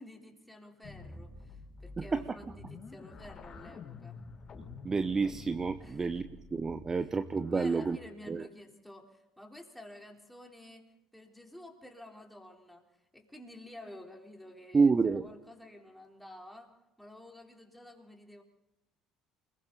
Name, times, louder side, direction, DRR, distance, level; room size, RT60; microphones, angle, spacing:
voice 1, 0.0-4.2 5.8-6.2 6.9-7.2 7.5-18.4, left 1 dB, 5° left, 1 dB, 4.0 m, -51 dB
sound 1, 0.8-7.9, left 3 dB, 35° left, 4.9 m, -48 dB
voice 2, 4.8-8.0 8.3-8.5 14.7-15.2, right 4 dB, 25° right, 11 dB, 0.9 m, -29 dB
29.5 x 21.0 x 4.2 m, 0.93 s
figure-of-eight pair, 55°, 2 cm